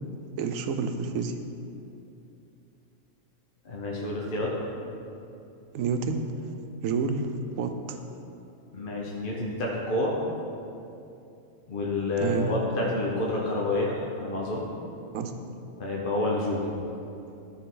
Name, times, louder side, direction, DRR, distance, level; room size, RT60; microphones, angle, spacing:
voice 1, 0.4-1.3 5.7-6.3 6.8-7.3 7.6-8.0 12.2-12.5 15.1-15.3, right 5 dB, 80° right, 7 dB, 1.0 m, -29 dB
voice 2, 3.6-4.5 8.7-10.1 11.7-14.7 15.8-16.7, left 1 dB, 45° left, -3 dB, 1.0 m, -29 dB
12.5 x 4.2 x 3.8 m, 2.7 s
omnidirectional pair, 1.4 m